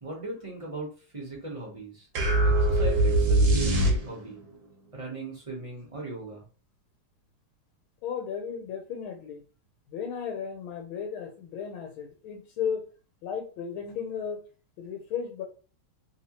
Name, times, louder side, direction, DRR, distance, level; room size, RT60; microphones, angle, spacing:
voice 1, 0.0-2.1 2.4-4.4 4.9-6.4, right 2 dB, 30° right, -3 dB, 0.6 m, -38 dB
sound 1, 2.2-4.4, right 1 dB, 50° right, 1.0 m, -22 dB
voice 2, 8.0-9.4 9.9-12.9 13.2-14.4 14.8-15.4, left 7 dB, 85° left, 3 dB, 1.5 m, -34 dB
3.4 x 2.8 x 2.9 m, 0.36 s
omnidirectional pair, 2.2 m